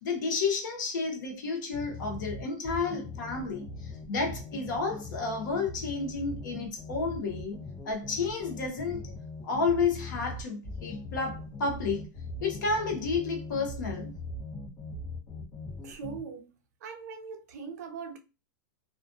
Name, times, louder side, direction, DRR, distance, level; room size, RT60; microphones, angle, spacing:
voice 1, 0.0-7.6 7.8-9.1 9.4-12.1 12.4-14.1, left 4 dB, 65° left, 0.8 m, -31 dB
sound 1, 1.7-16.2, left 2 dB, 35° left, 1.0 m, -41 dB
voice 2, 15.8-16.5 16.8-18.2, right 5 dB, 55° right, 0.5 m, -41 dB
2.4 x 2.2 x 2.6 m
supercardioid pair, 170°, 11 cm